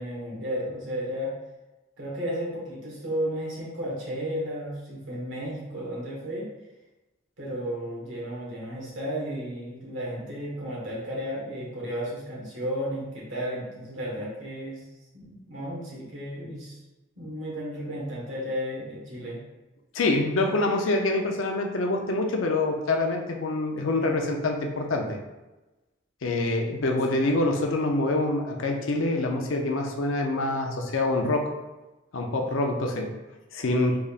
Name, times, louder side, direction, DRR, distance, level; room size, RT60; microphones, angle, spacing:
voice 1, 0.0-1.3 2.0-6.5 7.4-14.8 15.1-16.8 17.2-19.4, equal, 75° right, -5 dB, 1.4 m, -33 dB
voice 2, 19.9-25.1 26.2-31.5 32.1-33.1 33.5-34.0, left 2 dB, 70° left, 2 dB, 0.5 m, -25 dB
3.8 x 3.4 x 2.4 m, 1.1 s
head